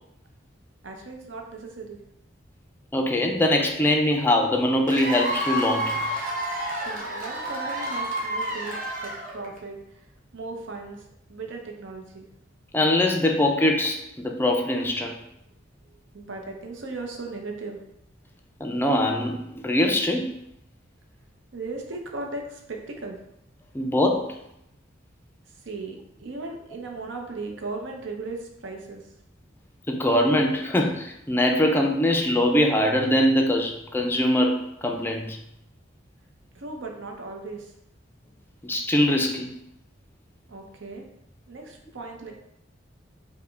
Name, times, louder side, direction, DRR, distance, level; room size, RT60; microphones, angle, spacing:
voice 1, 0.8-2.0 6.8-10.1 10.3-12.3 16.1-17.8 21.5-23.2 25.6-29.1 36.5-37.7 40.5-41.1 41.5-42.3, right 3 dB, 75° right, 2 dB, 0.7 m, -37 dB
voice 2, 2.9-6.0 12.7-15.1 18.6-20.3 23.7-24.4 29.9-35.4 38.6-39.5, left 1 dB, 10° left, 3 dB, 0.4 m, -22 dB
Cheering / Applause / Crowd, 4.9-9.6, right 1 dB, 45° right, 0.9 m, -29 dB
4.9 x 2.1 x 3.3 m, 0.79 s
head